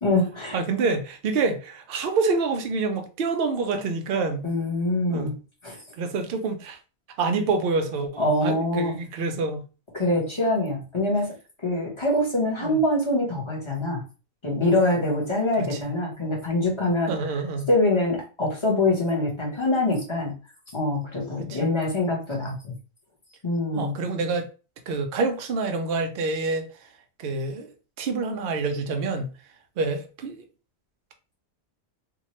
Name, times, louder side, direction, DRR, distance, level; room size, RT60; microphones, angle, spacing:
voice 1, 0.0-0.6 4.4-5.3 5.6-5.8 8.2-8.9 9.9-11.3 11.6-14.0 14.4-17.1 17.7-20.3 20.7-22.7 23.4-23.9, left 2 dB, 25° left, 0.8 m, -24 dB
voice 2, 0.5-4.5 5.1-5.3 6.0-6.8 7.2-9.6 12.6-12.8 15.6-15.8 17.1-17.7 21.4-21.6 23.8-24.5 24.9-26.7 27.2-27.7 28.0-29.3 29.8-30.4, right 4 dB, 65° right, 0.6 m, -27 dB
2.9 x 2.3 x 3.0 m
omnidirectional pair, 1.5 m